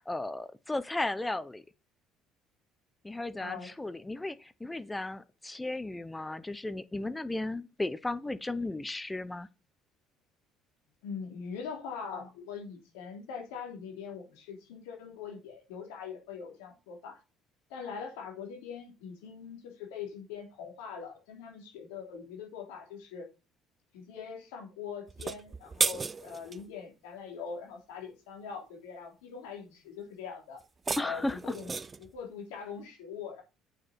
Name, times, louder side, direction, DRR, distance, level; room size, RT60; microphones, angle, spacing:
voice 1, 0.0-1.6 3.0-9.5 31.0-31.5, left 2 dB, 15° left, 0.9 m, -35 dB
voice 2, 3.4-3.7 11.0-17.2 17.7-23.3 23.9-30.6 31.0-31.7 32.0-33.4, left 6 dB, 75° left, 3.0 m, -42 dB
sound 1, 25.1-26.6 30.6-32.1, right 4 dB, 30° right, 0.6 m, -34 dB
8.6 x 6.3 x 4.3 m
hypercardioid pair, 60°, 0 cm